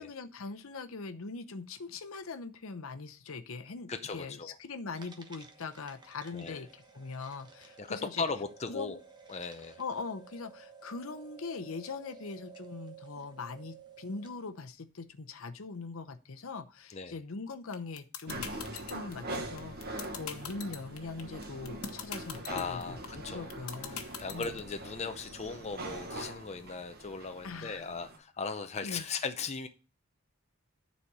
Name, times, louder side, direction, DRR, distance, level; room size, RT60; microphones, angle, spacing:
voice 1, 0.0-8.2 8.7-9.0 9.8-23.0 23.3-24.6 27.4-28.0 28.8-29.1, left 4 dB, 70° left, 8 dB, 0.8 m, -41 dB
voice 2, 3.9-4.6 6.3-6.6 7.8-9.0 9.3-9.8 16.9-17.2 22.5-23.5 23.9-29.7, left 4 dB, 30° left, 7 dB, 0.6 m, -38 dB
sound 1, 4.9-14.5, right 5 dB, 20° right, 1.1 m, -54 dB
sound 2, 17.7-24.7, left 9 dB, 90° left, 1.1 m, -40 dB
sound 3, 18.3-28.2, right 1 dB, 50° right, 1.2 m, -43 dB
9.9 x 4.2 x 4.7 m, 0.33 s
head